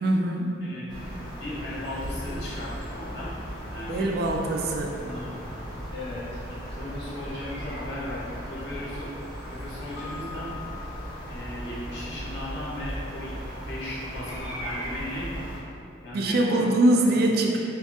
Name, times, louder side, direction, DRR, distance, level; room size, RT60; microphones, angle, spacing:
voice 1, 0.0-0.7 3.9-5.0 16.1-17.6, right 1 dB, 50° right, 1 dB, 0.3 m, -23 dB
voice 2, 0.6-3.3 3.7-4.1 4.9-5.3 5.9-6.4 6.7-9.1 9.4-10.5 11.3-13.4 13.7-15.3 16.0-16.7 17.0-17.2, left 1 dB, 60° left, -7 dB, 0.8 m, -36 dB
sound 1, 0.9-15.6, equal, 25° left, 0.6 m, -37 dB
Keyboard (musical), 10.0-11.8, left 6 dB, 75° left, 0.3 m, -44 dB
3.0 x 2.6 x 3.5 m, 2.6 s
head